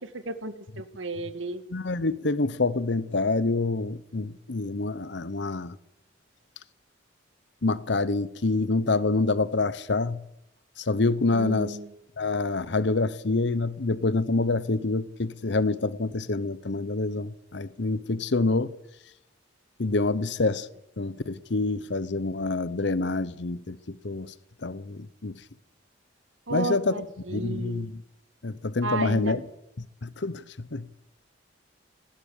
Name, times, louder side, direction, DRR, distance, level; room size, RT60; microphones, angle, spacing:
voice 1, 0.0-1.6 11.3-11.9 26.5-27.9 28.8-29.4, right 2 dB, 85° right, 2.2 m, -33 dB
voice 2, 1.7-5.8 7.6-10.2 10.8-11.8 12.2-18.7 19.8-20.7 21.0-24.3 24.6-25.4 26.5-26.9 27.3-28.0 28.4-29.4 29.8-30.9, left 3 dB, 65° left, 0.9 m, -27 dB
19.5 x 16.0 x 8.5 m
head